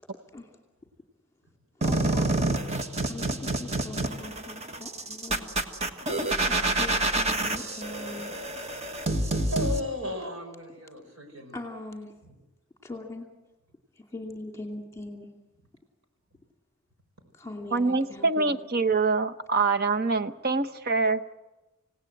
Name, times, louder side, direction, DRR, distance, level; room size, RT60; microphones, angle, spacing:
voice 1, 1.8-2.6 3.1-5.5 6.4-8.4 11.5-12.1 12.8-13.2 14.0-15.3 17.3-18.5, left 2 dB, 15° left, 2 dB, 2.5 m, -40 dB
sound 1, 1.8-9.8, right 2 dB, 30° right, 1.5 m, -28 dB
voice 2, 8.4-9.0 9.5-11.6 12.2-12.3, left 1 dB, 75° right, 5 dB, 5.5 m, -35 dB
voice 3, 17.7-21.2, right 4 dB, 45° right, 10 dB, 0.9 m, -25 dB
27.0 x 17.5 x 7.9 m, 1.1 s
head